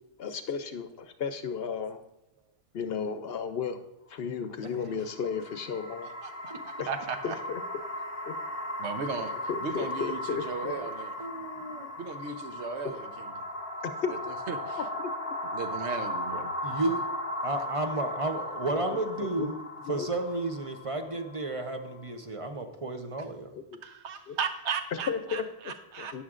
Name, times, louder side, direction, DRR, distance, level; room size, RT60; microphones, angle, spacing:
voice 1, 0.2-2.0 2.7-3.8 4.1-6.1 6.8-6.9 7.2-7.6 8.3-8.4 9.5-10.7 11.4-11.5 13.8-14.1 15.0-15.1 19.2-19.5 19.8-20.1 23.5-23.6 24.3-24.4 25.1-25.4 26.0-26.2, left 6 dB, 60° left, 9 dB, 0.8 m, -34 dB
sound 1, 4.9-22.1, left 1 dB, 15° left, 1.2 m, -37 dB
voice 2, 6.2-7.4 8.8-9.3 9.6-11.2 12.0-13.3 14.1-14.8 15.5-16.5 23.8-26.2, right 5 dB, 75° right, 8 dB, 1.1 m, -36 dB
voice 3, 11.2-11.9 16.6-17.1 17.4-19.6 19.9-23.5, right 2 dB, 35° right, 6 dB, 0.7 m, -32 dB
13.0 x 9.5 x 2.5 m, 0.88 s
omnidirectional pair, 1.2 m